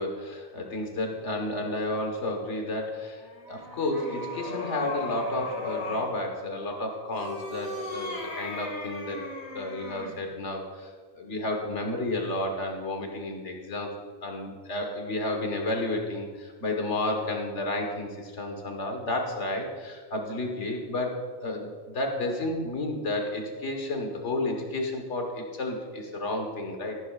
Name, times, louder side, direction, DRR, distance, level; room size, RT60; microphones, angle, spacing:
voice 1, 0.0-3.2 3.5-9.2 9.5-13.9 14.2-27.0, left 2 dB, 55° left, 3 dB, 1.7 m, -31 dB
sound 1, 3.1-6.1 7.1-10.2, left 2 dB, 75° left, 1.9 m, -37 dB
14.0 x 11.0 x 2.5 m, 1.5 s
omnidirectional pair, 1.4 m